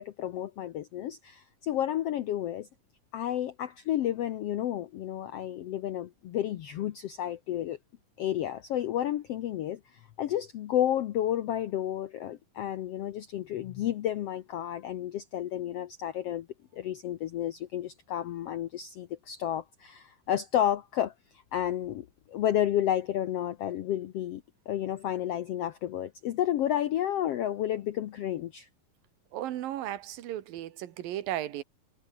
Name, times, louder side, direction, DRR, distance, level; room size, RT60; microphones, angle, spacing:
voice 1, 0.0-2.7 3.1-7.8 8.2-16.5 16.7-21.1 21.5-28.7, left 11 dB, 75° left, 1.4 m, -31 dB
voice 2, 29.3-31.6, right 13 dB, 90° right, 3.2 m, -35 dB
omnidirectional pair, 3.9 m